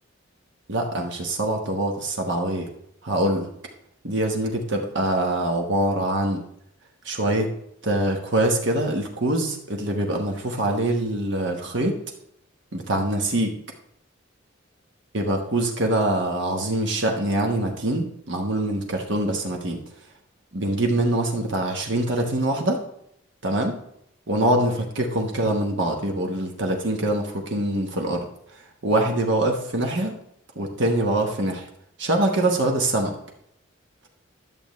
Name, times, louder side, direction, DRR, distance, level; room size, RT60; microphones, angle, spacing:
voice 1, 0.7-2.7 3.0-3.5 4.0-6.4 7.0-7.5 7.8-12.0 12.7-13.6 15.1-19.8 20.5-22.8 23.4-23.8 24.3-28.3 28.8-30.2 30.6-31.7 32.0-33.2, right 1 dB, 65° right, 2 dB, 1.2 m, -24 dB
11.0 x 6.9 x 3.1 m, 0.74 s
head